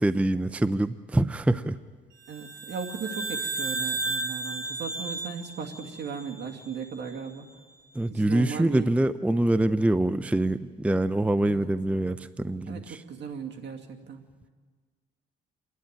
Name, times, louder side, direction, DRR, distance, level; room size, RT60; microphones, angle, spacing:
voice 1, 0.0-1.8 7.9-13.0, right 1 dB, 5° right, 13 dB, 0.5 m, -25 dB
voice 2, 2.3-7.5 8.1-8.9 11.4-11.7 12.7-14.2, right 6 dB, 60° right, 2 dB, 2.4 m, -37 dB
sound 1, 2.3-6.8, right 3 dB, 90° right, 2.8 m, -34 dB
28.5 x 11.0 x 8.8 m, 1.5 s
cardioid pair, 90°, 20 cm